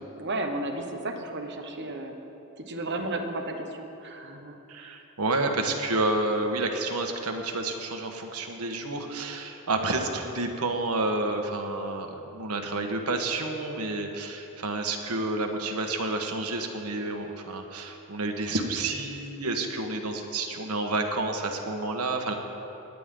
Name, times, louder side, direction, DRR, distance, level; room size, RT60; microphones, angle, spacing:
voice 1, 0.0-2.1 2.6-5.0, right 2 dB, 55° right, 4 dB, 1.2 m, -34 dB
voice 2, 4.7-22.3, right 2 dB, 90° right, 4 dB, 1.3 m, -29 dB
18.5 x 11.0 x 3.8 m, 2.9 s
head